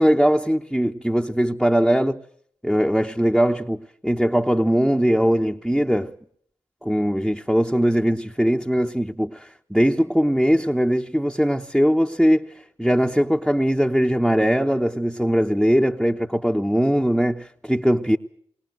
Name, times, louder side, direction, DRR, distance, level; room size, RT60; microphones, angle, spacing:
voice 1, 0.0-2.2 2.6-6.1 6.8-12.5 12.8-18.2, equal, 5° right, 1.1 m, -20 dB
21.5 x 18.5 x 7.8 m
cardioid pair, 40°, 12 cm